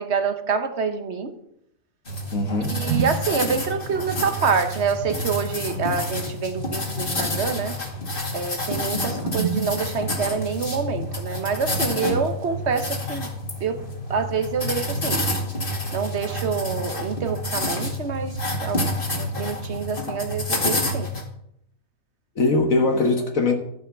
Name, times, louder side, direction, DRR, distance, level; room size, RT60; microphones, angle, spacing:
voice 1, 0.0-1.3 2.6-7.7 8.3-13.3 13.6-13.8 14.1-15.2 15.9-18.8 19.1-21.1, right 6 dB, 55° right, 9 dB, 1.2 m, -26 dB
sound 1, 2.1-21.2, left 1 dB, 40° left, 2.3 m, -28 dB
voice 2, 2.3-2.8 8.9-9.1 22.4-23.5, left 3 dB, 70° left, 3 dB, 1.7 m, -21 dB
14.0 x 5.7 x 7.0 m, 0.75 s
omnidirectional pair, 1.5 m